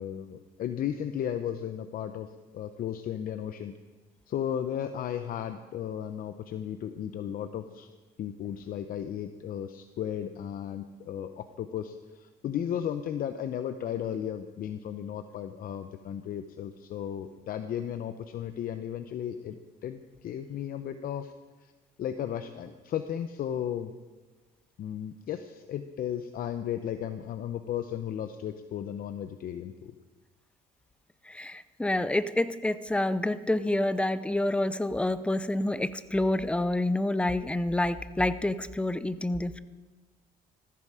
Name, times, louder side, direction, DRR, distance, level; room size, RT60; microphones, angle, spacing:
voice 1, 0.0-3.7 4.3-7.9 8.2-21.3 21.6-21.7 22.0-23.9 24.8-29.9, left 9 dB, 60° left, 9 dB, 0.9 m, -35 dB
voice 2, 31.3-39.6, left 1 dB, 5° left, 14 dB, 0.7 m, -28 dB
19.0 x 15.0 x 5.0 m, 1.3 s
cardioid pair, 110°, 17 cm